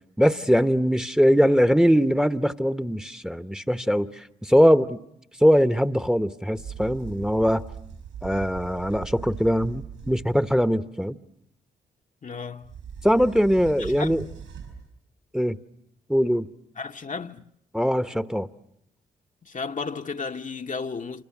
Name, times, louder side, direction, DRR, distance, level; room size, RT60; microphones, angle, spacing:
voice 1, 0.2-5.0 5.4-7.6 8.2-11.2 13.0-14.2 15.3-15.6 16.1-16.5 17.7-18.5, equal, 5° right, 1.0 m, -21 dB
sound 1, 6.5-10.7 12.6-14.9, right 7 dB, 75° right, 7.6 m, -40 dB
voice 2, 12.2-12.8 13.8-14.2 16.8-17.5 19.4-21.2, left 4 dB, 40° left, 1.0 m, -34 dB
27.5 x 27.5 x 7.3 m
hypercardioid pair, 45°, 20 cm